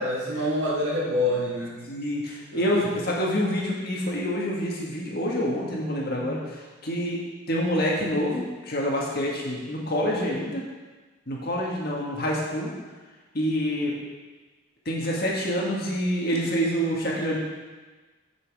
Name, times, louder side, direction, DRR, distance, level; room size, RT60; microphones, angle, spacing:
voice 1, 0.0-1.8 2.5-2.6 5.7-6.4, left 1 dB, 65° right, -7 dB, 2.5 m, -27 dB
voice 2, 1.9-7.2 7.5-10.6 11.3-12.7 13.3-13.9 14.8-17.4, equal, 50° left, -3 dB, 1.7 m, -27 dB
7.5 x 7.3 x 4.8 m, 1.3 s
head